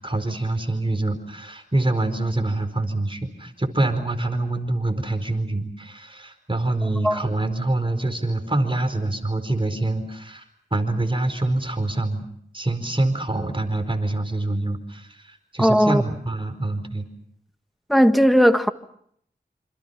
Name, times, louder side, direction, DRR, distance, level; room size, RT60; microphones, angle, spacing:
voice 1, 0.0-10.4 10.7-12.2 12.5-17.1, right 2 dB, 30° right, 4.6 m, -25 dB
voice 2, 15.6-16.0 17.9-18.7, equal, ahead, 1.8 m, -16 dB
27.5 x 27.0 x 5.8 m
cardioid pair, 45°, 18 cm